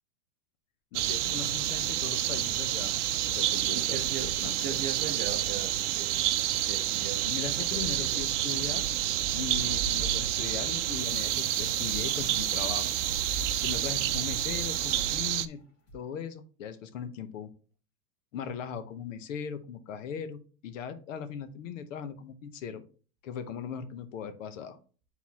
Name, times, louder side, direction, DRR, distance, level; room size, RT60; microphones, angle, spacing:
voice 1, 0.9-2.9 3.3-5.1 7.2-8.9 9.3-12.9 13.6-15.6 15.9-17.5 18.3-22.8 23.2-24.8, left 7 dB, 65° left, 10 dB, 1.0 m, -39 dB
sound 1, 0.9-15.5, right 12 dB, 60° right, 0.6 m, -29 dB
voice 2, 3.7-4.3 4.6-6.2 6.7-7.2 7.6-8.2, right 7 dB, 20° right, 4 dB, 0.7 m, -39 dB
sound 2, 10.8-15.6 15.9-16.0, left 4 dB, 45° left, 2.5 m, -47 dB
9.4 x 4.0 x 2.9 m, 0.38 s
supercardioid pair, 170°, 41 cm